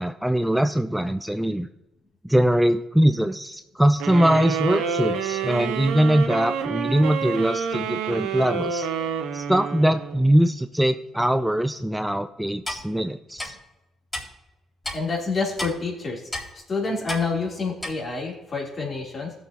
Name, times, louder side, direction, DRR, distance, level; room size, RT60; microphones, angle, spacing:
voice 1, 0.0-1.7 2.2-8.9 9.3-13.6, right 1 dB, 5° right, 9 dB, 0.5 m, -22 dB
sound 1, 4.0-10.4, right 6 dB, 85° right, 1.0 m, -28 dB
Clock, 12.6-12.8 13.4-13.5 14.1-14.2 14.8-15.0 15.6-15.7 16.3-16.5 17.1-17.2 17.8-17.9, left 1 dB, 15° left, 3.8 m, -30 dB
voice 2, 14.9-16.2 16.7-19.3, left 4 dB, 45° left, -2 dB, 3.5 m, -28 dB
16.5 x 6.9 x 3.0 m, 0.98 s
supercardioid pair, 70°, 0 cm